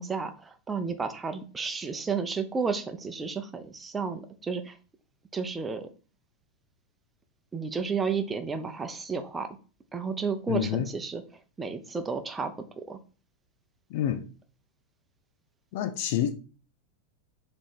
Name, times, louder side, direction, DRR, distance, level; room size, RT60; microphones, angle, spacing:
voice 1, 0.0-4.8 5.3-5.9 7.5-9.5 9.9-11.2 11.6-13.0, right 5 dB, 15° right, 0.8 m, -32 dB
voice 2, 10.5-10.9 13.9-14.2 15.7-16.3, left 10 dB, 50° left, 0.7 m, -28 dB
7.4 x 3.3 x 4.5 m
figure-of-eight pair, 90°, 0 cm